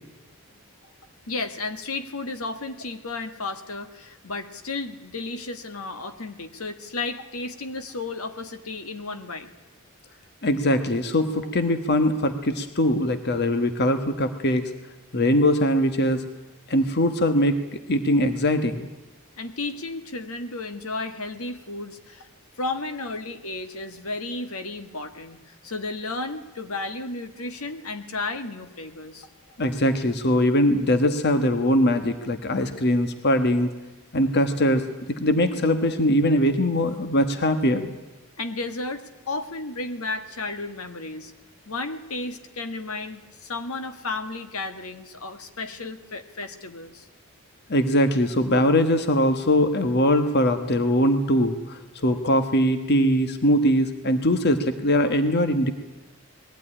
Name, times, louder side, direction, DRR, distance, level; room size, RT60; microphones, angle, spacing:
voice 1, 1.3-9.5 19.4-22.3 22.6-29.3 38.4-41.3 41.6-47.1, left 3 dB, 75° left, 8 dB, 1.7 m, -33 dB
voice 2, 10.4-14.7 15.1-16.2 16.7-18.9 29.6-33.7 34.1-37.9 47.7-55.7, equal, 50° left, 8 dB, 1.3 m, -21 dB
21.0 x 15.0 x 10.0 m, 1.1 s
head